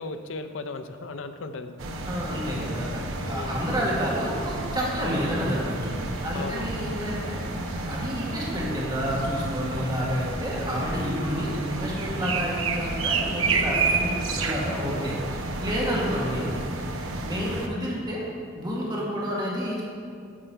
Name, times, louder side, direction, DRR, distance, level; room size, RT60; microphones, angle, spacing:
voice 1, 0.0-1.7 3.2-3.7 6.3-6.7 15.9-16.2, left 3 dB, 65° left, 9 dB, 0.5 m, -36 dB
sound 1, 1.8-17.7, right 3 dB, 85° right, 0.8 m, -30 dB
voice 2, 2.0-5.9 6.2-7.4 7.8-15.2 15.6-16.5 17.2-18.2 18.5-19.8, equal, 20° right, -5 dB, 1.3 m, -29 dB
8.6 x 6.6 x 4.4 m, 2.3 s
head